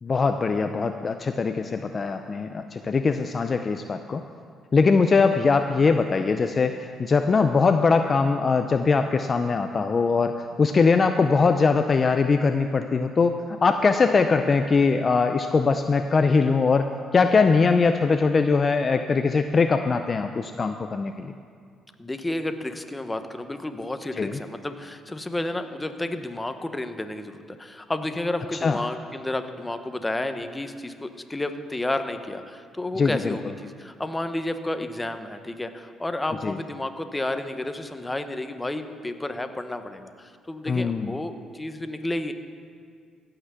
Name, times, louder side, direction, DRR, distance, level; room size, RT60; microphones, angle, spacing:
voice 1, 0.0-4.2 4.7-16.9 17.1-21.3 24.2-24.4 28.6-28.8 33.0-33.4 36.4-36.6 40.7-41.1, left 4 dB, 35° left, 7 dB, 0.5 m, -21 dB
voice 2, 22.0-42.3, left 1 dB, 15° left, 8 dB, 0.8 m, -31 dB
16.0 x 5.9 x 6.8 m, 2.1 s
cardioid pair, 85°, 0 cm